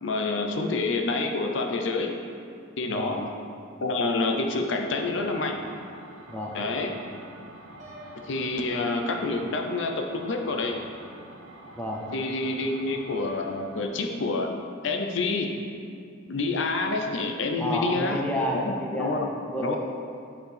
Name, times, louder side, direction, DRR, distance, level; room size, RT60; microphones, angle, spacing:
voice 1, 0.0-2.2 2.8-3.3 3.8-5.6 6.5-7.0 8.3-10.9 12.1-14.5 14.8-15.6 16.3-18.3 18.5-19.3 19.6-19.8, left 3 dB, 65° left, 3 dB, 0.5 m, -28 dB
voice 2, 2.9-3.2 6.3-6.6 11.8-12.1 17.6-19.8, equal, 5° left, -2 dB, 0.5 m, -30 dB
sound 1, 4.3-13.9, right 1 dB, 80° right, 0.7 m, -47 dB
Piano, 7.8-9.7, left 1 dB, 35° right, 1.2 m, -49 dB
9.5 x 4.1 x 3.4 m, 2.4 s
head